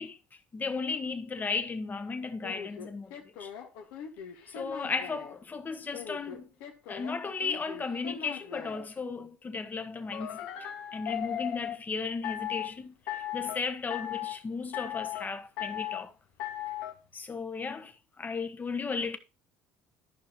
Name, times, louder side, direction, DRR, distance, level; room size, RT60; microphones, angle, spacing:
voice 1, 0.5-3.5 4.5-6.5 6.9-16.1 17.1-19.2, left 4 dB, 25° left, 1.3 m, -35 dB
sound 1, 2.4-5.4 5.9-8.9 10.1-11.8 12.2-12.7 13.1-13.6 13.9-14.4 14.7-15.3 15.6-16.0 16.4-16.9, left 11 dB, 75° left, 1.9 m, -38 dB
14.0 x 5.5 x 3.1 m
hypercardioid pair, 75°, 6 cm